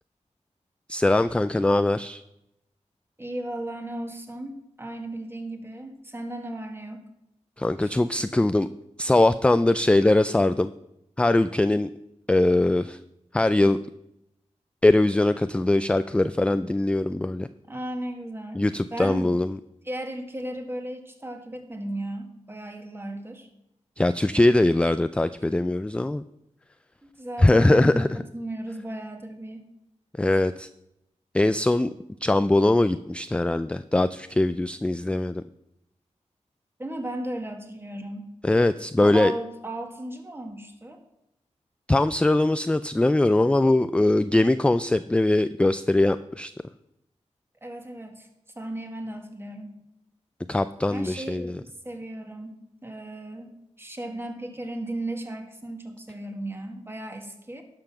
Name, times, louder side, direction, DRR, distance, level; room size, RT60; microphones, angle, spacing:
voice 1, 0.9-2.2 7.6-8.7 9.0-10.7 11.2-11.9 12.3-13.0 13.3-13.8 14.8-17.5 18.6-19.6 24.0-26.2 27.4-28.1 30.2-30.7 31.3-31.9 32.2-35.4 38.4-39.3 41.9-46.5 50.5-51.6, left 2 dB, 10° left, 12 dB, 0.3 m, -21 dB
voice 2, 3.2-7.1 7.8-7.9 17.7-18.7 18.9-19.3 19.8-23.5 27.0-28.0 28.3-29.7 36.8-38.3 39.0-41.0 47.6-48.3 48.6-49.8 50.9-57.6, right 1 dB, 20° right, 4 dB, 1.7 m, -35 dB
11.5 x 5.8 x 5.9 m, 0.85 s
cardioid pair, 65°, 12 cm